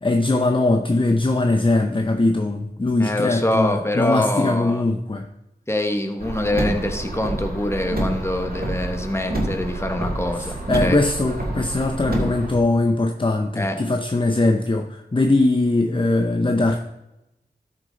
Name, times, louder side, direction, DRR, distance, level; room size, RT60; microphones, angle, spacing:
voice 1, 0.0-5.3 10.4-16.8, left 2 dB, 30° left, 5 dB, 0.7 m, -21 dB
voice 2, 3.0-4.8 5.7-11.0 13.5-13.8, left 1 dB, 15° left, 5 dB, 1.2 m, -24 dB
Car, 6.2-12.5, right 1 dB, 65° right, 2.4 m, -27 dB
13.0 x 6.4 x 4.0 m, 0.91 s
wide cardioid pair, 60°, 16 cm